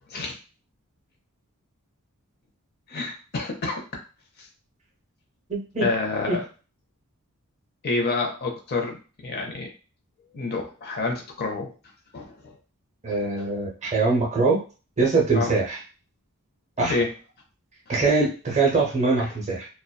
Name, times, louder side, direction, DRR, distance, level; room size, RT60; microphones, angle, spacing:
voice 1, 2.9-3.8 4.4-4.5 5.8-6.4 7.8-9.0 9.2-9.7 10.3-11.7 12.1-12.5 15.3-15.5 16.8-17.1 19.2-19.3, left 3 dB, 45° left, 1 dB, 0.6 m, -28 dB
voice 2, 5.5-5.9 6.3-6.4 13.0-14.6 15.0-15.8 16.8-16.9 17.9-19.7, right 3 dB, 30° right, -1 dB, 0.6 m, -23 dB
2.6 x 2.1 x 2.2 m, 0.35 s
head